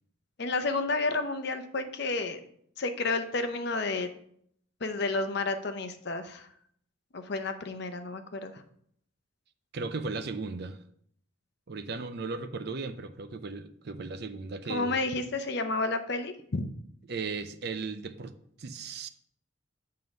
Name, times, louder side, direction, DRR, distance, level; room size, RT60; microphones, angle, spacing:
voice 1, 0.4-2.4 2.8-4.1 4.8-6.5 7.1-8.6 14.7-16.7, left 3 dB, 50° left, 8 dB, 0.7 m, -31 dB
voice 2, 9.7-10.8 11.7-15.0 17.1-18.3 18.6-19.1, right 4 dB, 50° right, 10 dB, 0.5 m, -36 dB
7.8 x 3.8 x 5.2 m, 0.66 s
head